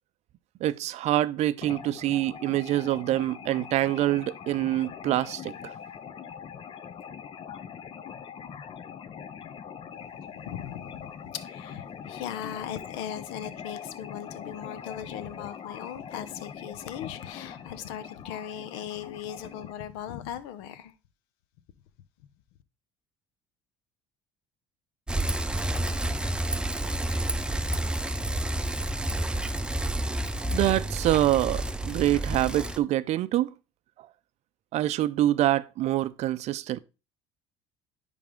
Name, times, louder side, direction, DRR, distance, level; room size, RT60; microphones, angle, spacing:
voice 1, 0.6-5.7 30.5-33.5 34.7-36.8, right 14 dB, 55° right, 0.5 m, -25 dB
sound 1, 1.6-19.7, left 7 dB, 40° left, 0.6 m, -42 dB
voice 2, 10.2-20.9, left 10 dB, 80° left, 0.7 m, -38 dB
Bicycle, 25.1-32.8, right 1 dB, 5° right, 0.5 m, -29 dB
10.0 x 3.4 x 3.6 m
supercardioid pair, 85°, 13 cm